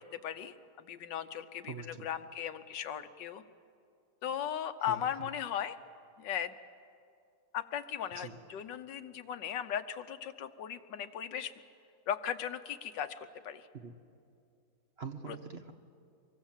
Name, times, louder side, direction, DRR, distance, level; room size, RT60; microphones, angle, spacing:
voice 1, 0.0-3.4 4.2-5.8 6.2-6.5 7.5-11.5 12.1-13.7 15.3-15.4, left 9 dB, 85° left, 10 dB, 1.6 m, -37 dB
voice 2, 1.7-2.1 4.8-5.3 8.1-8.4 13.7-13.9 15.0-15.7, right 5 dB, 40° right, 6 dB, 1.2 m, -44 dB
25.0 x 22.5 x 7.4 m, 2.4 s
omnidirectional pair, 1.9 m